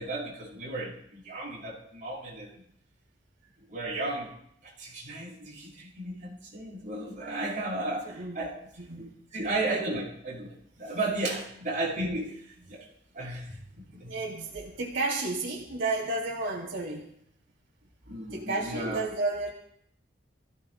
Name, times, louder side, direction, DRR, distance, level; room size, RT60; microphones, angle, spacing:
voice 1, 0.0-2.5 3.7-4.3 4.8-8.6 9.0-12.3 12.7-12.8 13.1-14.1 18.1-19.0, right 2 dB, 45° right, -5 dB, 6.4 m, -34 dB
voice 2, 7.2-7.6 8.0-8.4 8.8-9.1 14.0-17.0 18.3-19.5, right 2 dB, 90° right, -2 dB, 2.8 m, -32 dB
28.5 x 16.0 x 2.2 m, 0.69 s
head